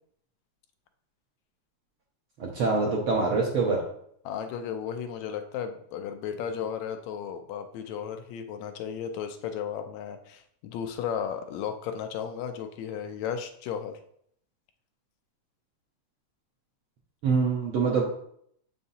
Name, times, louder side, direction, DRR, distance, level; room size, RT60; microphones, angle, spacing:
voice 1, 2.4-3.8 17.2-18.0, right 4 dB, 65° right, -2 dB, 1.3 m, -25 dB
voice 2, 4.3-14.0, left 8 dB, 80° left, 7 dB, 1.8 m, -34 dB
7.6 x 5.6 x 2.7 m, 0.68 s
omnidirectional pair, 3.4 m